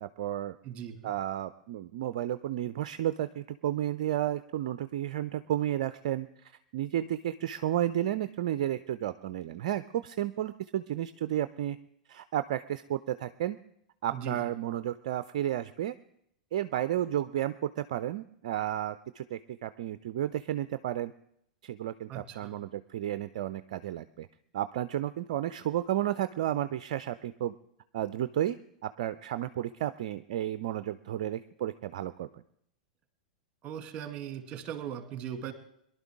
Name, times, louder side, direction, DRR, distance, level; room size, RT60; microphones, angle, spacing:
voice 1, 0.0-0.6 1.0-11.8 12.1-13.6 14.0-15.9 16.5-21.1 21.6-24.3 24.5-27.5 27.9-32.3, right 12 dB, 55° right, 13 dB, 0.4 m, -32 dB
voice 2, 0.6-1.1 14.1-14.4 22.1-22.6 33.6-35.5, right 9 dB, 30° right, 7 dB, 2.0 m, -39 dB
22.5 x 11.5 x 3.6 m, 0.74 s
figure-of-eight pair, 95°, 4 cm